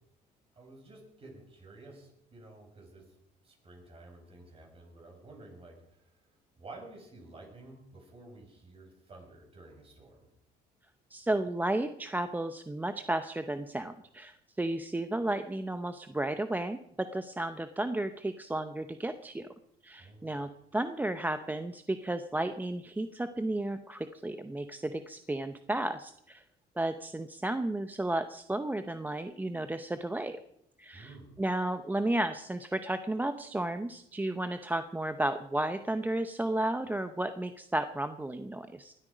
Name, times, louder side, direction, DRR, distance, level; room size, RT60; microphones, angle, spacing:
voice 1, 0.6-3.2 3.4-6.1 6.6-10.3 20.0-20.3 30.9-31.4, right 2 dB, 35° right, 1 dB, 7.0 m, -51 dB
voice 2, 11.1-19.5 19.8-26.4 26.8-30.4 30.8-38.9, right 1 dB, 10° right, 10 dB, 0.7 m, -33 dB
20.0 x 13.0 x 5.1 m, 0.76 s
cardioid pair, 110°, 17 cm